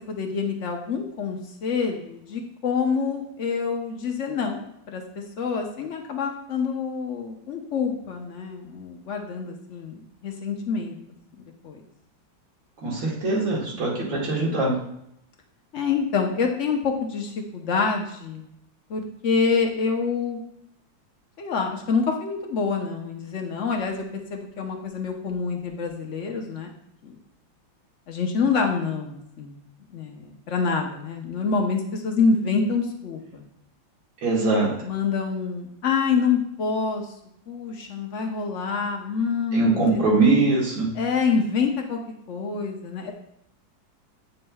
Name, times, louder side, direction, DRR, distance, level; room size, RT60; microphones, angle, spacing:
voice 1, 0.1-4.6 4.9-5.0 5.4-11.0 11.6-11.8 15.7-18.4 18.9-20.4 21.4-24.1 24.3-26.7 27.0-27.1 28.1-29.6 29.9-33.4 34.8-37.1 37.5-40.0 40.9-42.0 42.3-43.1, left 5 dB, 50° left, 3 dB, 0.9 m, -26 dB
voice 2, 12.8-14.7 34.2-34.7 39.5-40.9, right 3 dB, 80° right, -4 dB, 2.4 m, -22 dB
9.3 x 5.4 x 2.3 m, 0.77 s
omnidirectional pair, 2.1 m